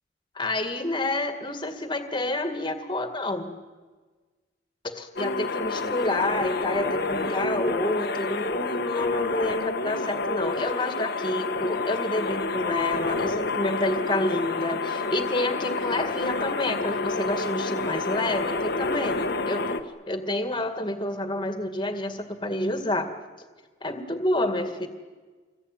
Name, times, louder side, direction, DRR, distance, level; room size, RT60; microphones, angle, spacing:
voice 1, 0.4-3.5 4.8-19.6 20.1-23.1 23.8-24.9, left 1 dB, 25° left, 7 dB, 2.1 m, -29 dB
sound 1, 5.2-19.8, left 3 dB, 55° left, 1.4 m, -29 dB
26.5 x 22.5 x 9.5 m, 1.4 s
head